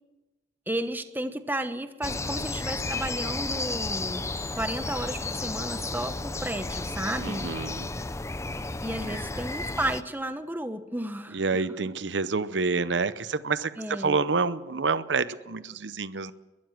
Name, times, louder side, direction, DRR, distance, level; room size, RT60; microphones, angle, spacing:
voice 1, 0.7-4.2 4.5-7.5 8.8-11.4 13.8-14.2, right 1 dB, 10° right, 9 dB, 1.2 m, -33 dB
sound 1, 2.0-10.0, left 3 dB, 15° left, 0.6 m, -33 dB
voice 2, 7.1-7.9 9.1-9.2 11.3-16.3, right 4 dB, 75° right, 14 dB, 0.8 m, -28 dB
22.0 x 13.0 x 9.4 m, 1.1 s
head